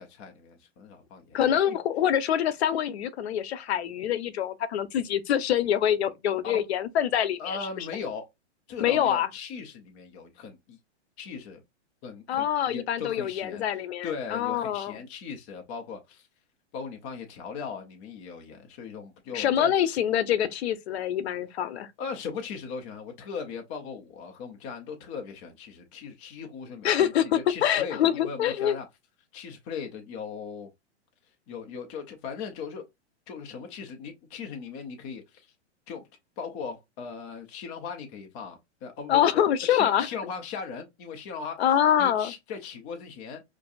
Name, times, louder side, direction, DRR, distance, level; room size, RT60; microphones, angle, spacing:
voice 1, 0.0-1.8 6.4-6.6 7.4-8.3 8.7-10.8 11.2-11.6 12.0-13.6 14.0-16.3 16.7-19.7 22.0-28.9 29.3-30.7 31.5-32.8 33.3-35.5 35.9-36.1 36.4-41.6 42.0-43.4, left 5 dB, 15° left, 0.3 m, -38 dB
voice 2, 1.3-7.6 8.8-9.3 12.3-14.9 19.3-21.9 26.8-28.8 39.1-40.1 41.6-42.3, left 10 dB, 65° left, 0.8 m, -25 dB
5.7 x 2.6 x 2.3 m
hypercardioid pair, 145°, 35 cm